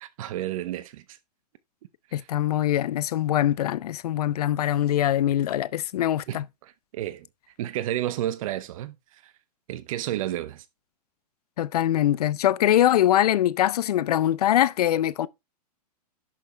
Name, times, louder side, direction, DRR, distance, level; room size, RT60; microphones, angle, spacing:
voice 1, 0.0-1.0 2.1-2.3 6.3-7.3 7.6-9.0 9.2-9.3 9.7-10.6, right 13 dB, 55° right, 1.1 m, -31 dB
voice 2, 2.1-6.4 11.6-15.3, left 12 dB, 70° left, 0.7 m, -23 dB
11.0 x 6.1 x 3.4 m
hypercardioid pair, 125°, 20 cm